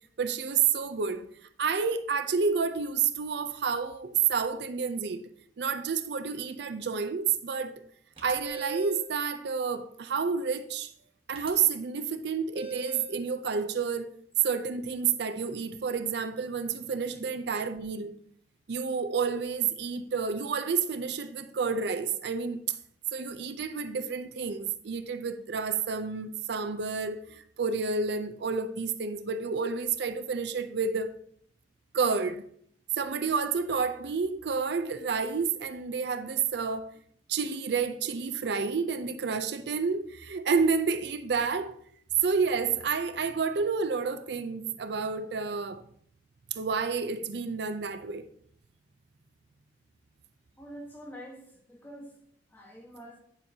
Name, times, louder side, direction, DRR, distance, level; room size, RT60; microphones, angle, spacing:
voice 1, 0.2-1.3 1.6-5.3 5.6-7.7 8.2-10.9 11.3-14.1 14.4-18.1 18.7-22.8 23.1-31.1 31.9-32.5 33.0-36.9 37.3-41.8 42.2-45.8 46.5-48.3, right 5 dB, 65° right, 0.5 m, -30 dB
sound 1, 8.2-9.0 11.3-11.5 12.5-13.2, right 2 dB, 30° right, 1.2 m, -39 dB
voice 2, 50.6-52.2 52.5-53.2, equal, 10° left, 1.3 m, -46 dB
9.7 x 6.8 x 2.8 m
head